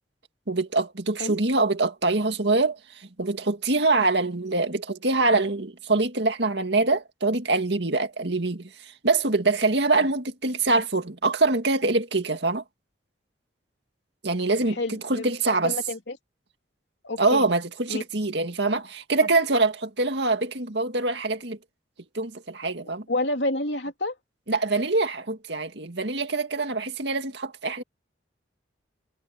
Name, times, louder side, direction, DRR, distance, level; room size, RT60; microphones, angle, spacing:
voice 1, 0.5-12.6 14.2-15.8 17.2-21.6 22.1-23.0 24.5-27.8, right 3 dB, 65° right, 2.2 m, -24 dB
voice 2, 14.7-15.3 15.6-16.2 17.0-17.5 17.9-18.0 23.1-24.1, left 2 dB, 70° left, 3.1 m, -29 dB
head